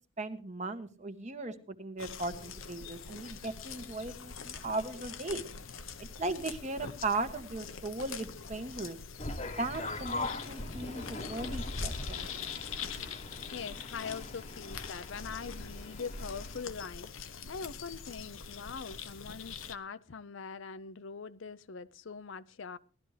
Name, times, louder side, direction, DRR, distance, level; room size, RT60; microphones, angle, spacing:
voice 1, 0.2-5.4 6.0-9.0 9.6-12.3, right 2 dB, 35° right, 1.2 m, -37 dB
sound 1, 2.0-19.8, left 6 dB, 90° left, 0.9 m, -44 dB
sound 2, 9.2-16.6, left 2 dB, 35° left, 1.0 m, -40 dB
voice 2, 13.5-22.8, left 5 dB, 70° left, 0.6 m, -43 dB
18.0 x 12.5 x 3.3 m
head